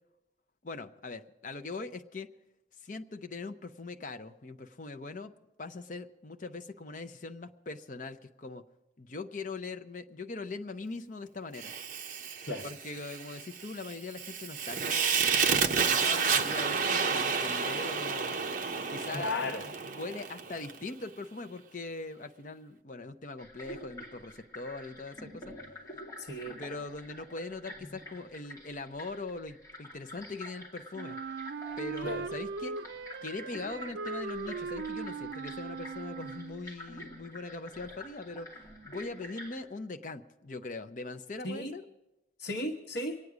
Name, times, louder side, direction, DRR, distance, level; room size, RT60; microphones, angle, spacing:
voice 1, 0.6-2.3 2.8-5.3 5.6-8.6 9.0-11.7 12.6-18.3 18.9-25.5 26.6-31.2 31.8-32.7 33.2-38.5 38.8-41.8, left 3 dB, 45° left, 8 dB, 0.7 m, -41 dB
Fire, 11.6-20.8, right 6 dB, 45° right, 0.8 m, -30 dB
voice 2, 19.1-19.6 26.2-26.6 32.0-32.2 41.4-41.7 42.4-43.2, left 2 dB, 80° left, 0 dB, 1.1 m, -34 dB
sound 1, 23.4-39.6, left 1 dB, 20° left, 2.6 m, -48 dB
Wind instrument woodwind instrument, 30.9-36.7, right 4 dB, 75° right, 0.4 m, -39 dB
24.0 x 9.5 x 4.9 m, 0.97 s
head